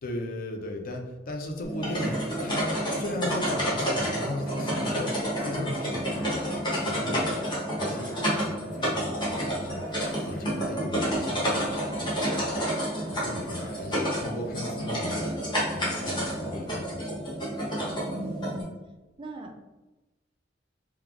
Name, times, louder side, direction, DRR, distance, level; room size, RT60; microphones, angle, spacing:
voice 1, 0.0-7.4 7.7-12.6 13.0-17.2, left 1 dB, 50° left, 3 dB, 0.4 m, -37 dB
sound 1, 1.6-18.6, equal, 25° left, 0.9 m, -29 dB
Bathtub (filling or washing), 1.7-9.1 9.6-10.9 11.5-14.7 15.8-16.8, left 1 dB, 85° left, 0.9 m, -46 dB
voice 2, 18.0-18.7 19.2-19.6, right 1 dB, 25° right, 4 dB, 0.3 m, -39 dB
3.2 x 2.2 x 2.3 m, 1.1 s
head